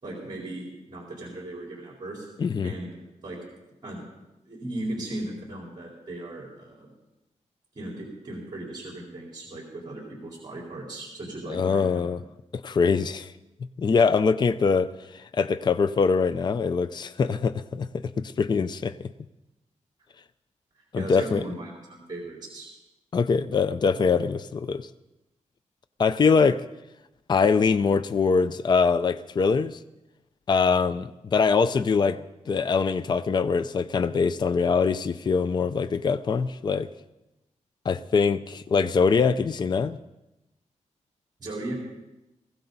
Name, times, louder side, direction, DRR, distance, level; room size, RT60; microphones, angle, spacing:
voice 1, 0.0-2.3 2.6-3.0 3.2-3.4 3.8-4.0 4.5-6.9 7.7-12.1 20.9-22.7 41.4-41.7, right 1 dB, 35° right, -3 dB, 4.2 m, -37 dB
voice 2, 2.4-2.7 11.5-12.2 12.5-13.3 13.8-18.9 20.9-21.4 23.1-24.9 26.0-26.6 27.3-29.8 30.5-32.2 32.5-36.9 37.9-40.0, left 5 dB, 35° left, 12 dB, 0.5 m, -23 dB
21.0 x 16.0 x 4.0 m, 0.99 s
wide cardioid pair, 150°, 12 cm